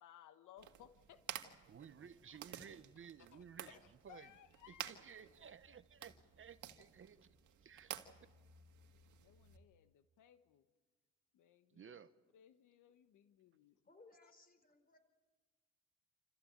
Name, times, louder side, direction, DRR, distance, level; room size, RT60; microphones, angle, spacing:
voice 1, 0.0-1.2 3.3-4.9 9.2-10.6 11.3-12.0 12.3-13.8, left 10 dB, 80° left, 1.2 m, -62 dB
sound 1, 0.6-9.6, right 10 dB, 75° right, 1.9 m, -53 dB
voice 2, 1.7-3.8 4.0-4.3 4.7-8.0 11.7-12.1, right 7 dB, 45° right, 1.0 m, -56 dB
voice 3, 13.8-15.0, left 3 dB, 30° left, 4.5 m, -64 dB
28.0 x 14.5 x 8.8 m
cardioid pair, 90°, 30 cm